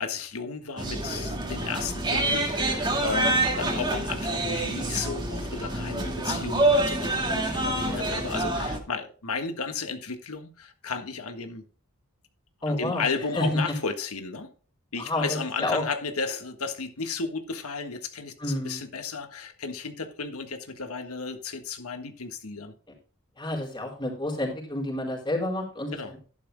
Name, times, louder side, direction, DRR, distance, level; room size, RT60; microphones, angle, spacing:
voice 1, 0.0-11.6 12.7-14.5 14.9-22.7 25.9-26.1, left 4 dB, 80° left, 1.5 m, -34 dB
sound 1, 0.8-8.8, right 1 dB, 20° right, 2.1 m, -27 dB
voice 2, 12.6-13.0 13.3-13.6 15.0-15.8 18.4-18.8 23.4-26.2, left 1 dB, 20° left, 4.5 m, -29 dB
12.0 x 11.5 x 2.3 m
head